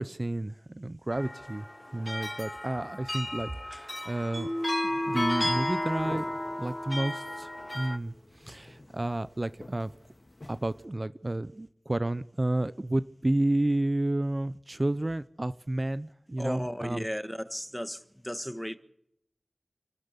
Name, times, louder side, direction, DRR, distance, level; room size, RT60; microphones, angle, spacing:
voice 1, 0.0-1.7 1.9-4.5 5.1-6.2 6.6-9.9 10.5-17.1, right 1 dB, 40° right, 0.7 m, -31 dB
sound 1, 1.1-8.0, left 1 dB, 25° left, 1.1 m, -34 dB
Mallet percussion, 4.3-7.6, equal, 80° right, 6.2 m, -35 dB
sound 2, 5.0-10.8, left 2 dB, 50° left, 2.7 m, -48 dB
voice 2, 16.4-18.8, equal, 5° left, 1.5 m, -35 dB
28.5 x 12.5 x 8.3 m
wide cardioid pair, 45°, 0 cm